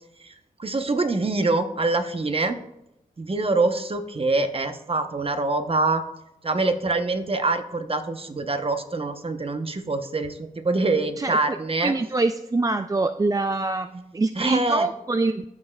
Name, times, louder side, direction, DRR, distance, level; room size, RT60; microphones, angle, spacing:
voice 1, 0.2-2.6 3.2-6.0 6.4-11.9 14.3-14.9, right 2 dB, 40° right, 7 dB, 0.9 m, -25 dB
voice 2, 11.8-15.4, right 3 dB, 25° right, 9 dB, 0.3 m, -24 dB
14.5 x 5.4 x 2.4 m, 0.83 s
cardioid pair, 45°, 15 cm